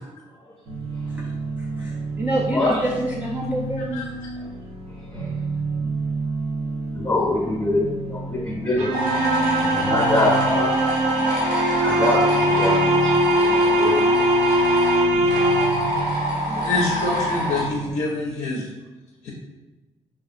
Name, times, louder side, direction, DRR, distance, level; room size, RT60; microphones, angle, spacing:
sound 1, 0.7-17.9, right 2 dB, 50° right, 0.6 m, -31 dB
voice 1, 1.8-4.0, right 1 dB, 15° right, -4 dB, 0.3 m, -26 dB
voice 2, 2.5-2.8 5.1-5.3 6.9-8.9 9.5-10.7 11.8-14.0, left 1 dB, 15° left, -5 dB, 0.7 m, -24 dB
sound 2, 8.8-16.0, right 1 dB, 90° right, 0.5 m, -21 dB
sound 3, 8.9-17.6, equal, 70° right, 1.2 m, -26 dB
voice 3, 16.6-18.7 19.2-19.3, left 3 dB, 65° left, -1 dB, 0.4 m, -25 dB
2.6 x 2.3 x 2.5 m, 1.1 s
cardioid pair, 90°, 12 cm